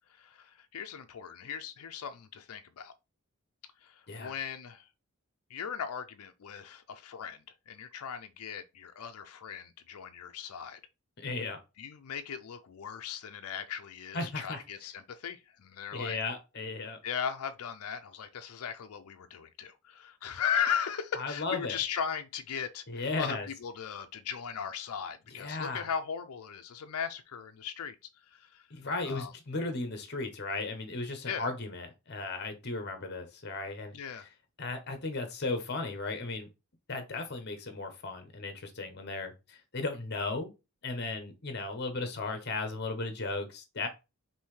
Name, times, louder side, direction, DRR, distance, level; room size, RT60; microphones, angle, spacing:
voice 1, 0.1-2.9 3.8-4.9 5.5-10.8 11.8-16.2 17.0-28.0 28.3-28.7 29.1-29.3 31.3-31.5 33.9-34.3, left 7 dB, 80° left, 0.4 m, -37 dB
voice 2, 11.2-11.6 14.1-14.6 15.9-17.0 21.2-21.8 22.9-23.5 25.3-25.8 28.7-33.9 34.6-36.5 36.9-40.5 40.8-43.9, left 3 dB, 45° left, 0.9 m, -35 dB
5.4 x 2.7 x 3.1 m
head